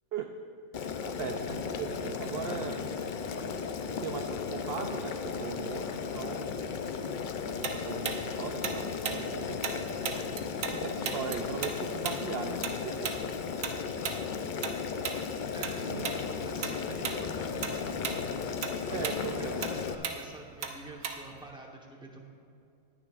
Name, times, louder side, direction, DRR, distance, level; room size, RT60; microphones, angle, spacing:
Boiling, 0.7-19.9, left 6 dB, 75° left, 0.4 m, -35 dB
voice 1, 0.8-3.0 3.8-7.3 7.6-9.9 10.7-13.2 15.9-16.2 18.9-19.7, right 7 dB, 65° right, 6 dB, 0.6 m, -39 dB
Tick-tock, 7.6-10.8 11.0-15.8 16.0-16.2 16.6-17.2 17.5-21.5, right 6 dB, 90° right, 1.3 m, -36 dB
voice 2, 15.5-22.2, right 2 dB, 5° right, 0 dB, 0.9 m, -47 dB
19.0 x 9.8 x 2.5 m, 2.5 s
omnidirectional pair, 1.5 m